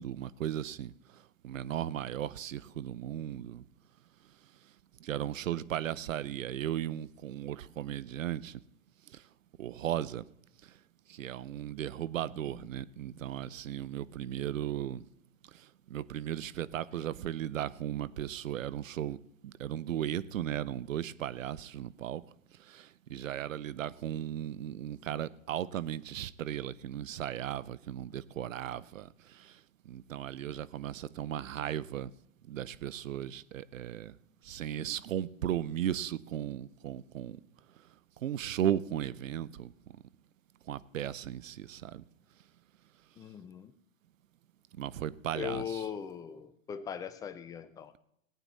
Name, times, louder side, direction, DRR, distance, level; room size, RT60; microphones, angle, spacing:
voice 1, 0.0-3.6 5.0-8.6 9.1-9.2 9.6-10.2 11.1-15.0 15.5-19.2 19.4-22.2 22.6-29.6 29.9-32.1 32.5-34.1 34.4-37.4 38.2-39.7 40.7-42.0 44.8-45.9, right 11 dB, 75° right, 0.7 m, -36 dB
voice 2, 43.2-43.7 45.3-48.0, left 9 dB, 10° left, 0.5 m, -40 dB
18.0 x 9.1 x 4.1 m
hypercardioid pair, 120°, 39 cm